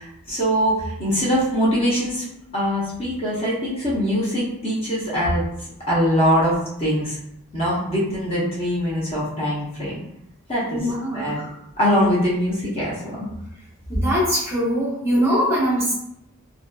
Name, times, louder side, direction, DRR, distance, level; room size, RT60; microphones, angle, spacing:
voice 1, 0.0-2.2 2.5-7.2 7.5-10.0 10.5-10.8 11.1-13.0, equal, 25° left, -7 dB, 0.7 m, -22 dB
voice 2, 10.7-11.3 13.9-15.9, equal, 10° right, -7 dB, 0.7 m, -22 dB
2.7 x 2.5 x 2.2 m, 0.79 s
head